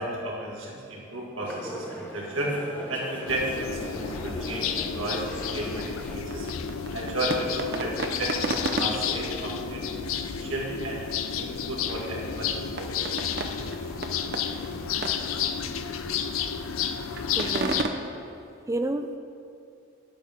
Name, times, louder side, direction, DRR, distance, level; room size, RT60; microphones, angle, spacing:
voice 1, 0.0-6.5 6.9-9.9 10.4-11.1 11.3-13.0, right 1 dB, 70° right, -3 dB, 2.2 m, -33 dB
sound 1, 1.4-6.2, equal, 10° left, 1.0 m, -39 dB
sound 2, 3.3-17.8, left 7 dB, 90° left, 0.5 m, -31 dB
sound 3, 5.5-17.9, right 2 dB, 50° right, 0.7 m, -36 dB
voice 2, 17.4-17.8 18.7-19.2, right 1 dB, 15° right, 8 dB, 0.4 m, -29 dB
9.4 x 8.5 x 5.8 m, 2.5 s
head